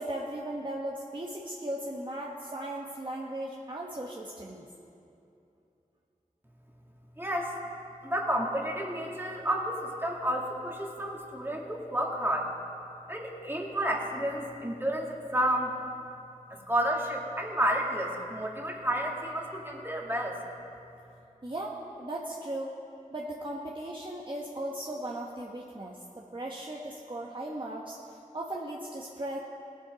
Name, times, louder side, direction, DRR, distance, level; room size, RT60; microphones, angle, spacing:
voice 1, 0.0-4.7 21.4-22.7 23.1-26.0 26.3-28.0 28.3-29.4, right 1 dB, 35° right, -2 dB, 1.2 m, -37 dB
voice 2, 7.2-7.5 8.0-12.5 13.1-15.7 16.7-20.4, right 1 dB, 15° right, -1 dB, 2.1 m, -31 dB
18.0 x 7.9 x 5.1 m, 2.7 s
cardioid pair, 40°, 14 cm